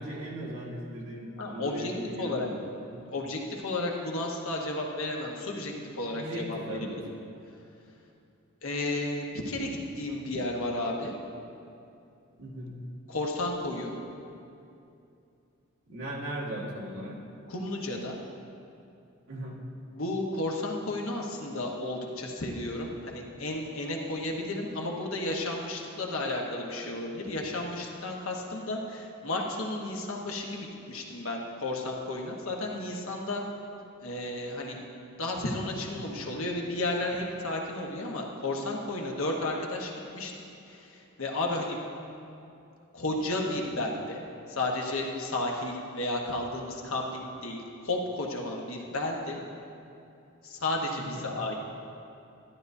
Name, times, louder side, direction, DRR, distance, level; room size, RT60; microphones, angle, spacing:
voice 1, 0.0-2.6 2.9-3.2 6.1-7.0 12.4-12.7 15.9-17.2 19.3-19.6 51.0-51.2, right 1 dB, 65° right, -5 dB, 1.9 m, -38 dB
voice 2, 1.4-1.9 2.2-2.5 3.1-6.9 8.6-11.1 13.1-13.9 17.5-18.2 19.9-33.4 34.0-34.8 35.2-40.3 40.7-41.8 42.9-44.2 44.5-49.4 50.4-51.6, left 2 dB, 70° left, 0 dB, 1.2 m, -33 dB
12.0 x 12.0 x 2.7 m, 2.6 s
head